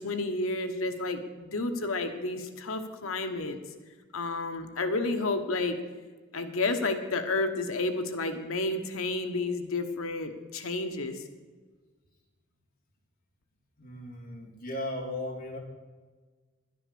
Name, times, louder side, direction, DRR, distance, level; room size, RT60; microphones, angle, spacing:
voice 1, 0.0-3.6 4.1-5.8 6.3-11.2, left 2 dB, 85° left, 7 dB, 1.2 m, -31 dB
voice 2, 13.8-15.6, left 1 dB, 45° left, 0 dB, 2.5 m, -36 dB
11.0 x 9.9 x 6.9 m, 1.4 s
head